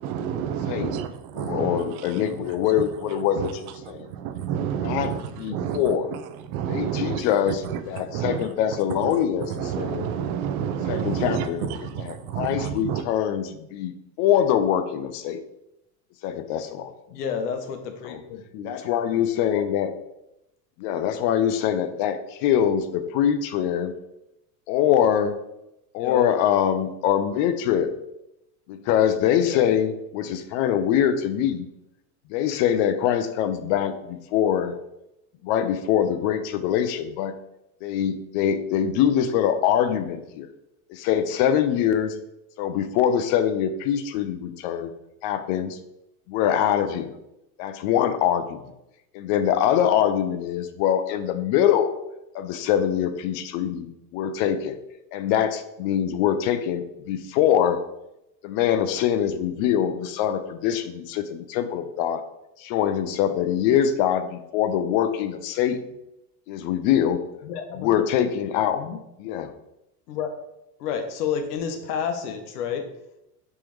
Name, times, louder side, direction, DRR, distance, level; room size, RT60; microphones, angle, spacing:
voice 1, 0.0-2.2 3.4-3.5 3.8-5.8 6.1-6.2 6.5-8.5 9.0-13.0, right 8 dB, 65° right, 0.5 m, -30 dB
voice 2, 0.7-1.1 1.3-4.1 4.8-6.1 6.7-10.1 10.9-15.4 16.2-16.9 18.0-18.2 18.6-19.9 20.8-23.9 24.7-25.4 25.9-27.9 28.7-31.7 32.3-34.8 35.4-37.3 37.8-40.5 40.9-42.1 42.6-44.9 45.2-45.8 46.3-47.1 47.6-48.6 49.1-51.9 52.3-54.8 55.1-57.8 58.4-62.2 62.6-65.8 66.5-67.2 67.7-68.8 69.2-69.5, left 9 dB, 55° left, 0.5 m, -24 dB
voice 3, 17.1-18.7 19.5-19.7 26.0-26.3 29.4-29.6 67.4-68.0 68.7-69.0 70.1-70.3 70.8-72.8, left 7 dB, 90° left, 0.8 m, -30 dB
3.6 x 3.1 x 3.1 m
supercardioid pair, 130°, 46 cm